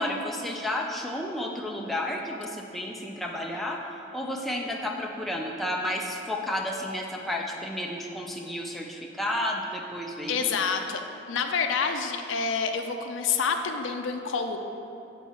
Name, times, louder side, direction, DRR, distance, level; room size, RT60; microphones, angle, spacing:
voice 1, 0.0-10.5, left 1 dB, ahead, -1 dB, 0.4 m, -32 dB
voice 2, 10.3-11.0 11.3-14.6, left 5 dB, 75° left, 5 dB, 0.4 m, -28 dB
8.4 x 4.5 x 4.3 m, 2.8 s
head